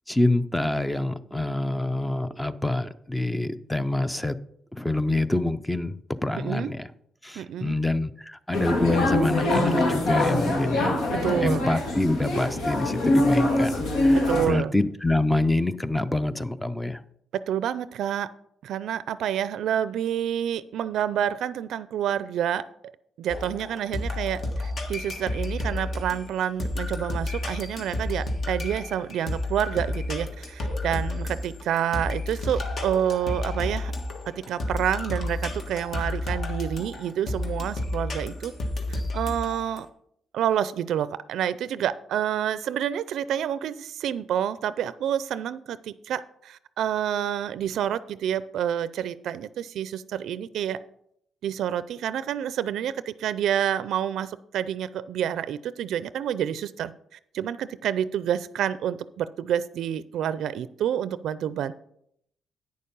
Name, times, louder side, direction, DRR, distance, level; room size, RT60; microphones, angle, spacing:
voice 1, 0.1-4.4 4.7-6.9 7.2-11.0 11.4-17.0, left 2 dB, 10° left, 13 dB, 0.5 m, -26 dB
voice 2, 6.3-6.7 7.4-7.8 11.1-11.7 14.3-14.7 17.3-18.3 18.6-22.6 23.2-33.9 34.3-38.5 38.9-39.9 40.3-50.8 51.4-56.9 57.3-61.7, right 10 dB, 75° right, 16 dB, 0.4 m, -28 dB
sound 1, 8.5-14.5, left 1 dB, 80° left, 2.1 m, -23 dB
sound 2, 23.3-39.8, left 2 dB, 50° left, 1.5 m, -31 dB
9.3 x 6.6 x 5.4 m, 0.72 s
cardioid pair, 90°, 0 cm